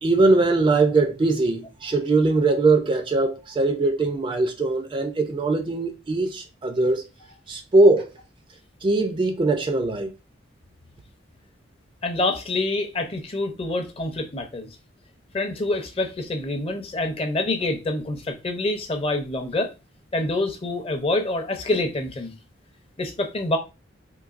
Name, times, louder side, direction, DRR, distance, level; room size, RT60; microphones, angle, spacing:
voice 1, 0.0-7.0 7.5-8.1 8.8-10.1, right 2 dB, 25° right, 0.3 m, -21 dB
voice 2, 12.0-14.7 15.3-19.7 20.1-22.3 23.0-23.6, left 2 dB, 30° left, 0.5 m, -26 dB
3.8 x 2.6 x 2.4 m
head